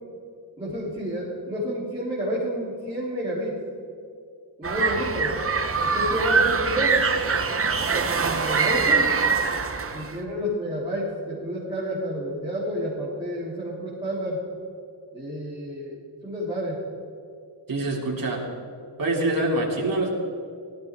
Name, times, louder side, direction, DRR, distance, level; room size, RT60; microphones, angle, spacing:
voice 1, 0.6-3.6 4.6-5.3 5.8-7.0 7.9-9.1 9.9-14.4 15.1-16.8, equal, 10° right, -8 dB, 3.5 m, -30 dB
sound 1, 4.6-10.2, right 5 dB, 30° right, 1.0 m, -23 dB
voice 2, 17.7-18.4 19.0-20.1, right 2 dB, 50° right, -2 dB, 3.4 m, -25 dB
18.5 x 15.0 x 3.8 m, 2.3 s
wide cardioid pair, 115°, 44 cm